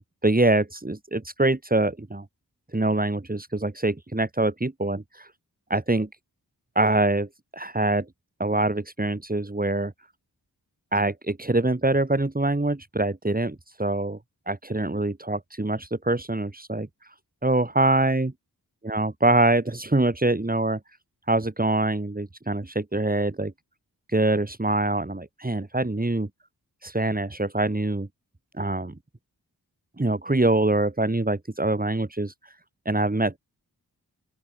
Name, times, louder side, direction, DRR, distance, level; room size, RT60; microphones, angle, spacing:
voice 1, 0.0-2.2 2.7-5.3 5.7-6.1 6.8-7.3 7.5-8.1 8.4-9.9 10.9-14.2 14.5-17.1 17.4-18.3 18.9-20.8 21.3-23.5 24.1-26.3 26.8-28.1 28.5-28.9 30.0-32.6 32.9-33.4, right 2 dB, 25° right, 7.4 m, -24 dB
open air
wide cardioid pair, 100°, 37 cm